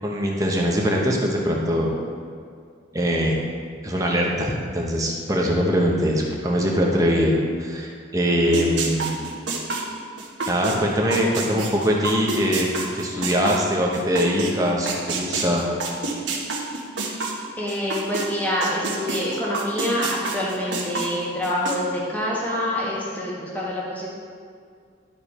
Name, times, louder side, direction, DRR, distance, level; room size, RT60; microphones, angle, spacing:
voice 1, 0.0-1.9 2.9-3.4 3.8-9.2 10.5-12.7 12.9-15.7, equal, 20° right, -1 dB, 0.9 m, -22 dB
sound 1, 8.5-14.5 14.9-18.3 18.6-21.8, right 3 dB, 75° right, 1.2 m, -28 dB
voice 2, 17.6-24.1, left 1 dB, 10° left, -6 dB, 1.3 m, -26 dB
12.0 x 5.1 x 4.3 m, 2.2 s
head